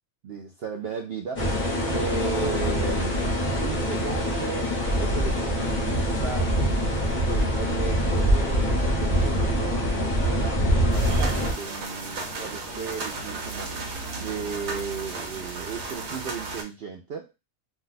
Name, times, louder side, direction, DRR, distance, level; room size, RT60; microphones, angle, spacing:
voice 1, 0.2-3.3 3.6-4.7 5.0-13.8 14.2-17.3, right 5 dB, 70° right, 1 dB, 0.5 m, -35 dB
sound 1, 1.4-11.5, equal, 25° left, 0.9 m, -24 dB
sound 2, 10.9-16.6, right 3 dB, 55° right, 0.9 m, -34 dB
2.6 x 2.2 x 3.9 m, 0.25 s
omnidirectional pair, 1.6 m